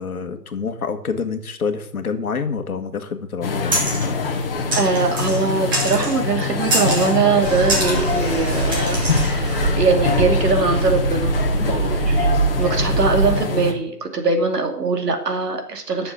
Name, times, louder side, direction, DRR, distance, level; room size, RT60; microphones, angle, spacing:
voice 1, 0.0-3.9 11.6-11.8, left 5 dB, 60° left, 7 dB, 1.6 m, -27 dB
sound 1, 3.4-13.7, left 4 dB, 35° left, 1.3 m, -24 dB
sound 2, 3.7-4.1 4.7-5.4 5.7-6.2 6.7-7.1 7.7-8.0 8.7-9.3, right 1 dB, 15° right, 1.1 m, -24 dB
voice 2, 4.7-11.3 12.6-16.1, right 4 dB, 70° right, 4 dB, 2.6 m, -21 dB
sound 3, 7.4-13.3, right 3 dB, 35° right, 4.5 m, -23 dB
11.0 x 7.0 x 6.0 m, 0.68 s
hypercardioid pair, 165°, 49 cm